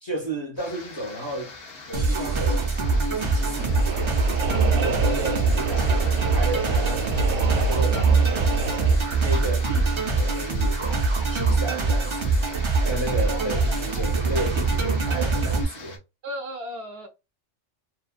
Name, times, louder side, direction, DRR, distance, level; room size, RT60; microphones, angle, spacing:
voice 1, 0.0-1.6 1.9-4.0 4.7-7.1 7.6-8.5 9.2-12.4 12.8-16.0, right 1 dB, 25° left, 0.8 m, -33 dB
sound 1, 0.6-16.0, left 2 dB, 55° left, 1.0 m, -41 dB
sound 2, 1.9-15.6, right 3 dB, 40° right, 0.4 m, -23 dB
sound 3, 3.6-9.0, right 3 dB, 90° right, 1.0 m, -28 dB
voice 2, 5.0-5.4 13.3-13.6 13.9-14.0 16.2-17.1, equal, 65° right, 0.8 m, -36 dB
2.8 x 2.2 x 2.3 m
omnidirectional pair, 1.2 m